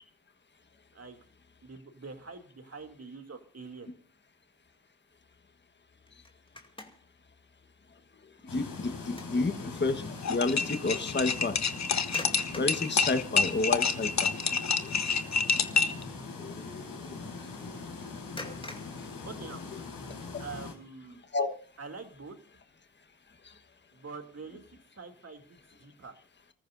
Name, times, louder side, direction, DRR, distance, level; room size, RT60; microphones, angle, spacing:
voice 1, 0.9-1.2 1.6-3.9 19.3-19.6 20.4-21.2 21.8-22.4 23.9-24.6 24.9-26.1, right 4 dB, 45° right, 5 dB, 2.8 m, -45 dB
sound 1, 6.1-7.2 7.7-7.9 8.4-9.5 9.8-10.0 12.0-13.0 13.8-13.9 14.3-14.6 14.9-15.1 18.4-20.0, left 2 dB, 15° left, 2.5 m, -45 dB
sound 2, 8.5-20.7, left 4 dB, 85° left, 4.4 m, -41 dB
voice 2, 8.5-10.0 10.3-11.6 12.5-14.3 16.4-16.8 18.4-18.5 21.3-21.5, left 3 dB, 35° left, 8 dB, 1.4 m, -30 dB
sound 3, 10.2-16.0, left 5 dB, 55° left, 1.1 m, -27 dB
29.5 x 14.5 x 2.6 m, 0.38 s
cardioid pair, 80°, 33 cm